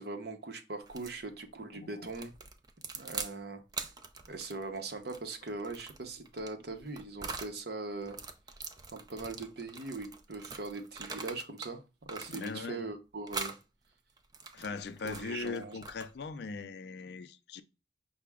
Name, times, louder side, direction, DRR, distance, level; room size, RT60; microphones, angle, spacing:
voice 1, 0.0-2.3 2.9-3.6 4.3-8.2 8.9-13.6 15.0-15.8, right 3 dB, 60° right, 0.7 m, -41 dB
sound 1, 0.9-1.2 2.1-3.4 3.7-7.6 8.0-11.7 12.0-12.8 13.3-13.6 14.2-16.3, right 4 dB, 20° right, 0.3 m, -43 dB
voice 2, 1.7-2.1 12.3-12.8 14.5-17.6, left 4 dB, 60° left, 0.4 m, -40 dB
5.7 x 2.1 x 3.5 m
head